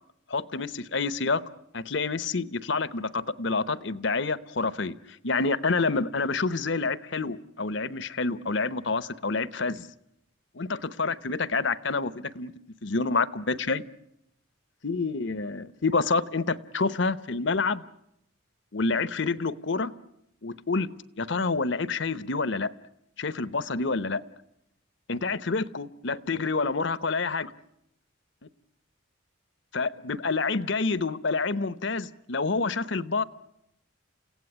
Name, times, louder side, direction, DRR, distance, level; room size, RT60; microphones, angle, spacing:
voice 1, 0.3-1.4 1.7-5.0 5.2-9.9 10.6-12.5 12.8-13.8 14.8-17.8 18.7-19.9 20.4-20.9 21.2-22.7 23.2-24.2 25.1-27.5 29.7-33.2, left 4 dB, 60° left, 17 dB, 0.9 m, -28 dB
29.0 x 16.5 x 9.8 m, 0.82 s
head